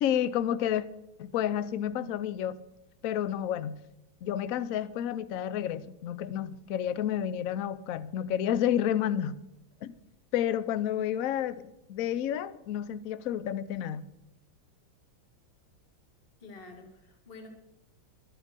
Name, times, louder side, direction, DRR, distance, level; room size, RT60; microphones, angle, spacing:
voice 1, 0.0-0.8 1.2-2.6 3.0-3.8 4.2-9.4 9.8-9.9 10.3-11.6 11.9-14.1, left 10 dB, 70° left, 16 dB, 0.8 m, -30 dB
voice 2, 16.4-17.5, left 3 dB, 30° left, 4 dB, 2.0 m, -48 dB
13.5 x 8.8 x 6.6 m, 0.89 s
omnidirectional pair, 2.3 m